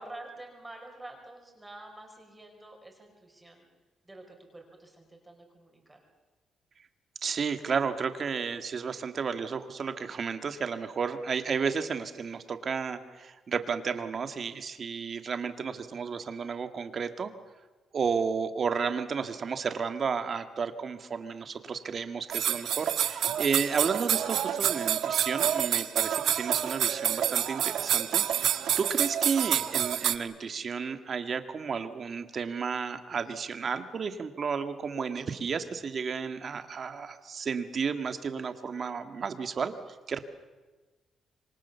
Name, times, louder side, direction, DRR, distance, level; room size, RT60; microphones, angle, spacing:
voice 1, 0.0-3.7 4.0-6.0, right 2 dB, 10° right, 2 dB, 5.1 m, -48 dB
voice 2, 7.2-17.3 17.9-39.7 40.1-40.2, right 6 dB, 40° right, 9 dB, 1.9 m, -32 dB
sound 1, 22.3-30.1, right 10 dB, 75° right, 1.3 m, -28 dB
27.0 x 23.5 x 7.0 m, 1.2 s
cardioid pair, 130°, 0 cm